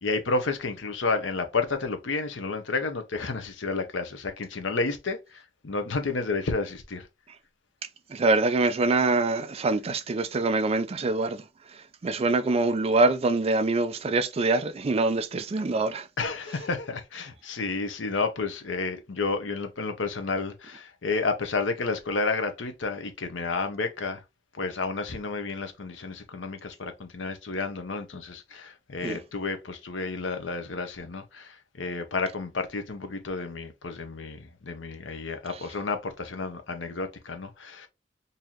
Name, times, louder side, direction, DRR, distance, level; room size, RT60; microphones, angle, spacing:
voice 1, 0.0-7.1 16.2-24.2 24.5-37.9, left 3 dB, 80° left, 0.8 m, -31 dB
voice 2, 8.1-11.4 12.0-16.1 29.0-29.2, right 3 dB, 35° right, 0.4 m, -24 dB
4.0 x 2.7 x 2.9 m
head